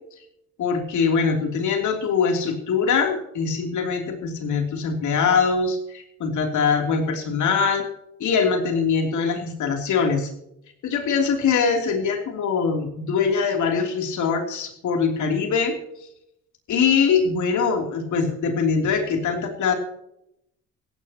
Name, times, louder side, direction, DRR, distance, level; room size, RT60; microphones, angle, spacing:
voice 1, 0.6-7.8 8.2-10.3 10.8-15.8 16.7-19.7, left 5 dB, 75° left, 4 dB, 3.2 m, -22 dB
16.5 x 16.0 x 3.0 m, 0.79 s
cardioid pair, 90°, 30 cm